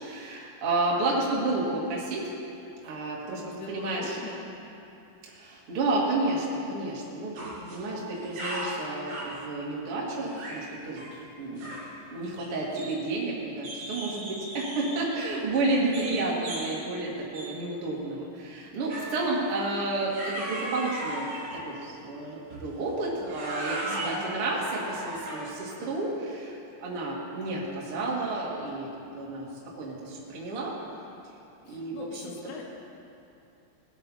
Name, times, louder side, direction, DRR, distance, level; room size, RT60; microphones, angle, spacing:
voice 1, 0.0-2.3 2.8-3.4 3.7-4.1 5.3-7.3 7.7-11.8 12.1-21.3 21.6-28.9 29.1-29.5 29.8-30.7 31.7-32.3, right 2 dB, 40° right, -4 dB, 2.1 m, -31 dB
voice 2, 3.3-4.4 7.5-8.0 15.8-16.2 23.9-24.3 31.7-32.6, left 4 dB, 85° left, -2 dB, 4.0 m, -42 dB
sound 1, 7.4-7.8 8.1-9.4 10.2-10.7 11.0-11.2 11.6-11.9 12.4-13.3 13.6-15.1 15.9-16.2 16.4-16.8 17.3-17.6 18.9-19.2 20.1-21.7 22.5-22.7 23.2-25.6, right 1 dB, 60° right, 5.7 m, -37 dB
19.0 x 9.4 x 4.3 m, 2.7 s
omnidirectional pair, 5.6 m